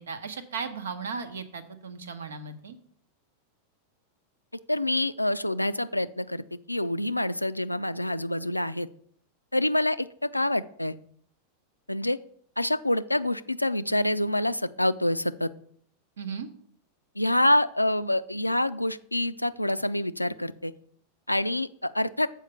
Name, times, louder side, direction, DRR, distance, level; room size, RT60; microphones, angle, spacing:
voice 1, 0.0-2.8 16.2-16.5, right 5 dB, 65° right, 10 dB, 0.9 m, -36 dB
voice 2, 4.7-8.9 9.5-10.9 11.9-12.2 12.6-15.5 17.2-20.7 21.3-22.3, left 1 dB, 85° left, 15 dB, 0.3 m, -26 dB
7.4 x 4.9 x 6.8 m, 0.63 s
figure-of-eight pair, 90°, 0 cm